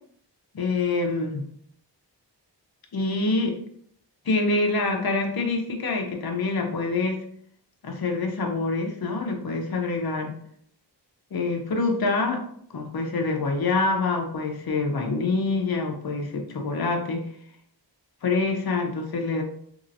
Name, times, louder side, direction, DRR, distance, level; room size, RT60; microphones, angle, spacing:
voice 1, 0.5-1.5 2.9-3.6 4.2-7.2 7.8-10.3 11.3-12.4 12.7-17.3 18.2-19.4, left 3 dB, 55° left, 2 dB, 0.7 m, -26 dB
3.0 x 2.8 x 2.6 m, 0.64 s
wide cardioid pair, 75°, 43 cm